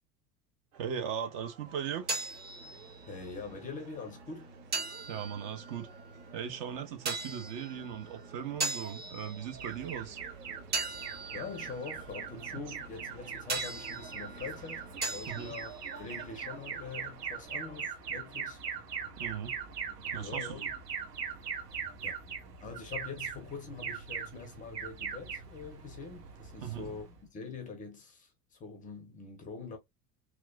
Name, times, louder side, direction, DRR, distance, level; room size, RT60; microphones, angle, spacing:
sound 1, 0.7-17.9, right 7 dB, 60° right, 0.9 m, -56 dB
voice 1, 0.8-2.1 5.1-5.9 6.3-10.2 15.3-15.5 19.2-19.5 20.1-20.7 26.6-26.9, right 8 dB, 35° right, 0.5 m, -38 dB
sound 2, 1.7-17.2, right 3 dB, 20° right, 0.9 m, -41 dB
voice 2, 3.1-4.5 11.3-15.7 16.0-18.6 20.0-20.7 21.4-21.5 22.0-22.1 22.6-29.8, left 5 dB, 15° left, 0.5 m, -44 dB
Alarm, 9.6-27.2, right 6 dB, 80° right, 1.2 m, -41 dB
3.0 x 2.1 x 2.2 m
figure-of-eight pair, 80°, 48 cm